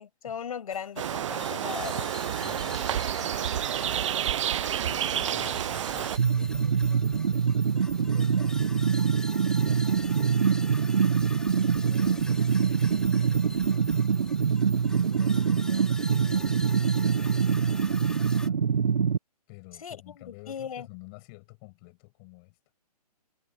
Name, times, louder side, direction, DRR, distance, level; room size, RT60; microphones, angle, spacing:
voice 1, 0.0-2.1 19.8-20.9, left 7 dB, 60° left, 5.9 m, -38 dB
sound 1, 0.7-18.5, left 2 dB, 5° left, 1.8 m, -43 dB
sound 2, 1.0-6.2, right 10 dB, 50° right, 0.4 m, -29 dB
voice 2, 2.4-4.2 4.8-9.1 9.6-10.9 11.6-14.0 14.8-18.6 19.5-22.6, left 31 dB, 30° left, 7.3 m, -50 dB
sound 3, 6.2-19.2, right 6 dB, 70° right, 1.2 m, -24 dB
figure-of-eight pair, 135°, 21 cm